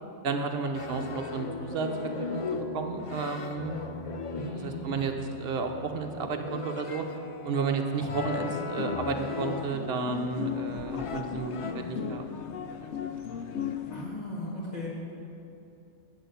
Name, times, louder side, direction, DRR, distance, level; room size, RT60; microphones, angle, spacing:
voice 1, 0.2-3.7 4.6-5.1 5.4-7.0 7.4-12.2, right 4 dB, 60° right, 4 dB, 1.0 m, -32 dB
sound 1, 0.7-10.1 11.0-12.0, left 4 dB, 60° left, 0.3 m, -38 dB
voice 2, 4.3-5.0 13.9-14.9, left 1 dB, 35° left, -8 dB, 2.1 m, -37 dB
sound 2, 8.3-14.1, left 7 dB, 80° left, 0.9 m, -36 dB
8.3 x 6.2 x 8.1 m, 2.7 s
omnidirectional pair, 1.2 m